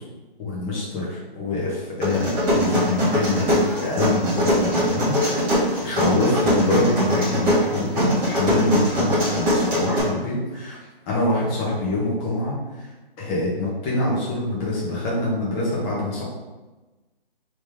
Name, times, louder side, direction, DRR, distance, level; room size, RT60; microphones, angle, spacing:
voice 1, 0.4-10.8 11.1-12.5 13.2-16.2, left 2 dB, 15° left, -6 dB, 0.7 m, -25 dB
sound 1, 2.0-10.0, equal, 20° right, 1.4 m, -21 dB
3.4 x 3.0 x 3.3 m, 1.1 s
hypercardioid pair, 150°, 29 cm